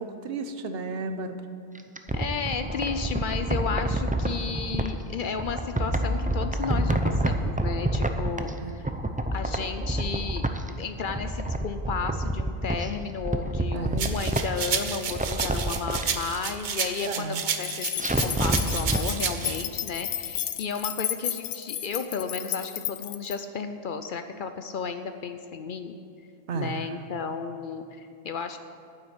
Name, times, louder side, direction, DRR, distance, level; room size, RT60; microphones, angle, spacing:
voice 1, 0.0-1.4 8.6-8.7 13.7-14.1 17.1-17.4 26.5-26.9, right 4 dB, 75° right, 8 dB, 1.0 m, -33 dB
sound 1, 1.7-4.9 5.4-8.6 8.8-10.7 11.0-12.9 13.2-14.7 15.1-16.1 18.0-19.0 19.4-19.5, right 1 dB, 10° right, 0.4 m, -27 dB
voice 2, 2.1-8.9 9.3-26.0 26.5-28.6, left 5 dB, 60° left, 8 dB, 0.7 m, -33 dB
sound 2, 14.0-19.6, right 6 dB, 55° right, 0.8 m, -31 dB
sound 3, 17.6-23.4, left 11 dB, 90° left, 0.8 m, -32 dB
9.3 x 7.8 x 8.7 m, 2.4 s
omnidirectional pair, 1.0 m